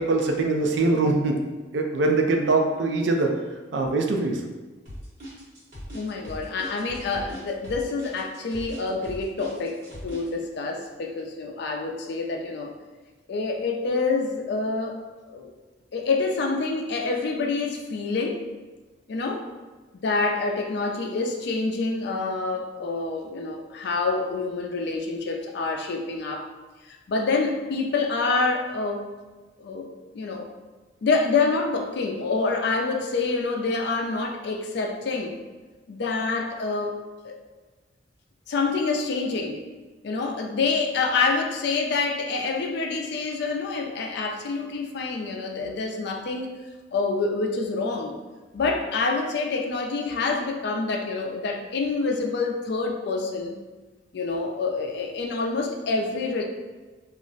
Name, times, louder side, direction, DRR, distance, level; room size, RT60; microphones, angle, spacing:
voice 1, 0.0-1.4 1.7-3.3 3.7-4.4, right 3 dB, 70° right, 3 dB, 0.4 m, -22 dB
sound 1, 4.9-10.3, equal, 50° right, 1.1 m, -40 dB
voice 2, 5.9-12.7 13.3-15.0 15.3-15.5 15.9-18.4 19.1-19.5 20.0-26.5 26.9-29.1 29.6-29.9 30.1-30.5 31.0-35.4 35.9-37.0 37.2-37.4 38.5-39.6 40.0-46.5 46.9-48.2 48.5-53.6 54.1-56.4, left 3 dB, 65° left, 3 dB, 0.4 m, -27 dB
2.4 x 2.0 x 3.8 m, 1.3 s
head